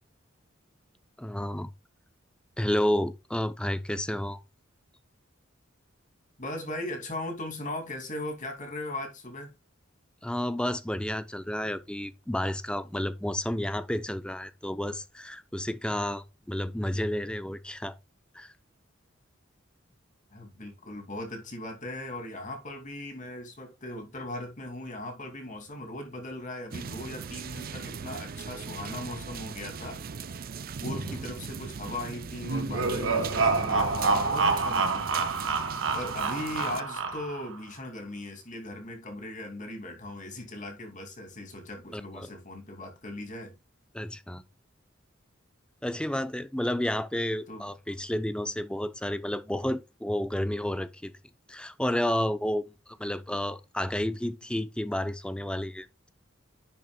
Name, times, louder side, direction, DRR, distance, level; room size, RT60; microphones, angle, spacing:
voice 1, 1.2-1.7 2.6-4.4 10.2-18.0 18.3-18.5 30.9-31.0 41.9-42.3 43.9-44.4 45.8-51.1 51.5-56.1, left 1 dB, 5° left, 0.6 m, -31 dB
voice 2, 6.4-9.5 20.3-30.0 30.5-35.3 35.9-43.6 47.5-47.7, left 1 dB, 40° left, 2.5 m, -38 dB
sound 1, 26.7-36.8, right 5 dB, 50° right, 0.5 m, -39 dB
sound 2, 32.4-37.5, right 3 dB, 75° right, 1.6 m, -27 dB
10.5 x 7.1 x 2.3 m
head